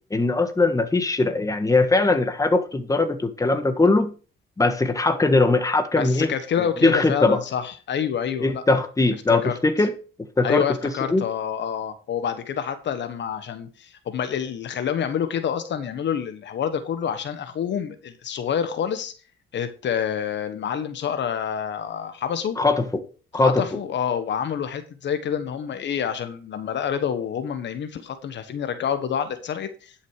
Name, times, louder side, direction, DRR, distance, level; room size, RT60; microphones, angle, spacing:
voice 1, 0.1-4.1 4.6-6.3 6.8-7.4 8.4-9.9 10.4-10.6 11.1-11.3 22.6-23.0 23.3-23.6, left 3 dB, 15° left, 1.6 m, -20 dB
voice 2, 6.0-8.6 9.3-9.5 10.4-19.1 19.5-22.6 23.3-29.9, left 8 dB, 65° left, 1.3 m, -27 dB
11.5 x 6.5 x 4.8 m
cardioid pair, 90°, 20 cm